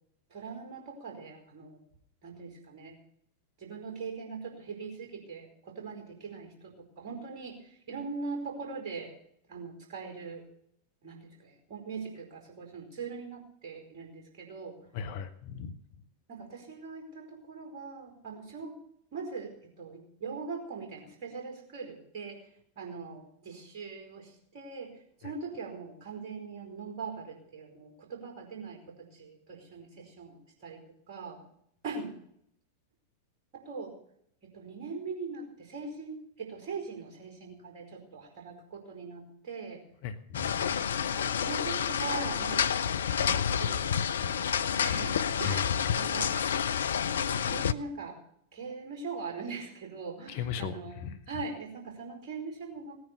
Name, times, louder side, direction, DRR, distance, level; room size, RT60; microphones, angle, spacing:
voice 1, 0.3-1.8 2.2-3.0 3.6-9.1 9.5-10.5 11.0-14.8 16.3-18.8 19.1-22.4 22.8-30.8 31.1-31.4 31.8-32.1 33.5-33.9 34.4-39.8 41.1-46.4 47.1-48.2 48.5-53.0, right 4 dB, 45° right, 2 dB, 4.6 m, -41 dB
voice 2, 14.9-15.7 40.0-41.1 45.4-46.0 50.3-51.2, left 7 dB, 50° left, 12 dB, 1.1 m, -37 dB
sound 1, 40.3-47.7, left 8 dB, 65° left, 0.5 m, -29 dB
18.0 x 9.5 x 6.9 m, 0.71 s
figure-of-eight pair, 90°, 0 cm